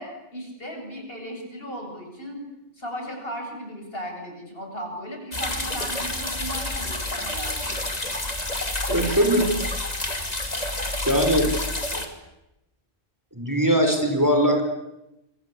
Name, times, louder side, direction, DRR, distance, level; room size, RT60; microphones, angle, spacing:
voice 1, 0.0-2.4 2.8-7.8, equal, 65° left, 3 dB, 7.7 m, -36 dB
sound 1, 5.3-12.1, left 1 dB, 40° left, 3.0 m, -29 dB
voice 2, 8.9-9.5 11.1-11.5 11.9-12.0 13.3-14.6, equal, 15° right, 4 dB, 4.8 m, -20 dB
27.0 x 26.0 x 8.5 m, 0.92 s
omnidirectional pair, 1.1 m